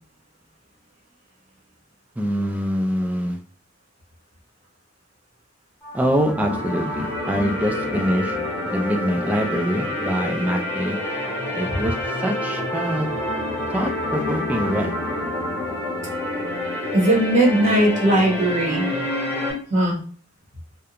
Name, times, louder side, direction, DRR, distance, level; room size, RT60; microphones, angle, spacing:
voice 1, 2.2-3.4 5.9-8.4 8.7-11.0 11.6-13.1 13.7-14.9, equal, 5° right, 2 dB, 0.3 m, -24 dB
sound 1, 5.8-19.5, left 1 dB, 10° left, 0.8 m, -27 dB
voice 2, 16.9-18.9 19.7-20.0, right 1 dB, 35° right, -3 dB, 0.9 m, -18 dB
2.4 x 2.2 x 2.8 m, 0.41 s
head